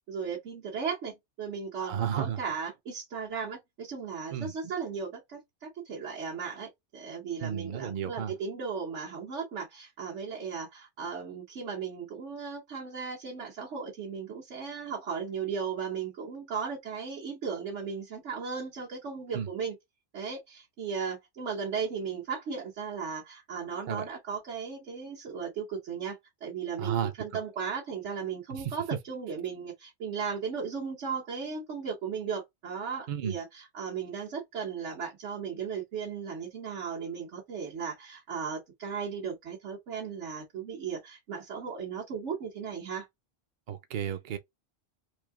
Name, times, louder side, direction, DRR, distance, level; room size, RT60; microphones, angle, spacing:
voice 1, 0.1-19.7 20.1-43.1, right 6 dB, 85° right, 1.5 m, -36 dB
voice 2, 1.8-2.4 4.3-4.7 7.4-8.3 19.3-19.5 23.9-24.1 26.8-27.1 28.5-28.7 33.1-33.4 43.7-44.4, right 9 dB, 55° right, 0.6 m, -33 dB
3.2 x 2.7 x 3.5 m
omnidirectional pair, 1.2 m